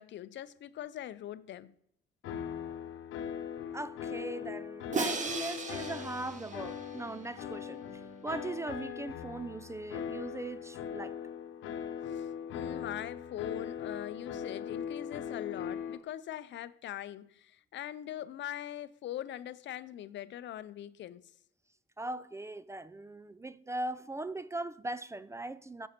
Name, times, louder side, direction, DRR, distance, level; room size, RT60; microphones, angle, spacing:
voice 1, 0.0-1.7 12.1-21.2, left 12 dB, 65° left, 0.5 m, -42 dB
sound 1, 2.2-16.0, left 8 dB, 85° left, 0.9 m, -40 dB
voice 2, 3.7-11.2 22.0-25.9, right 2 dB, 15° right, 0.3 m, -40 dB
Crash cymbal, 4.9-7.1, right 4 dB, 40° right, 1.2 m, -36 dB
9.3 x 6.2 x 4.4 m
cardioid pair, 90°, 20 cm